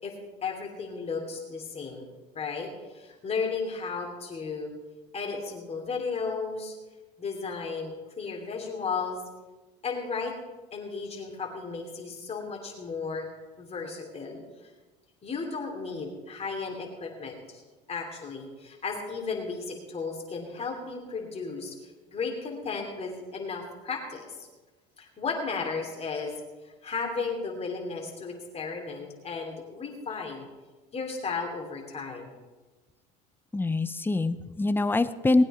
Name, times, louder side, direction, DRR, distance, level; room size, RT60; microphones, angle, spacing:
voice 1, 0.4-2.0 2.3-4.7 5.1-6.7 7.2-9.2 9.8-10.3 10.7-13.3 13.6-14.7 15.2-17.6 17.9-21.8 22.1-24.5 25.0-26.3 26.6-30.5 30.9-32.3, left 4 dB, 30° left, 1 dB, 3.2 m, -34 dB
voice 2, 33.5-35.4, left 2 dB, 10° left, 12 dB, 0.8 m, -24 dB
20.0 x 8.9 x 4.4 m, 1.2 s
supercardioid pair, 100°, 20 cm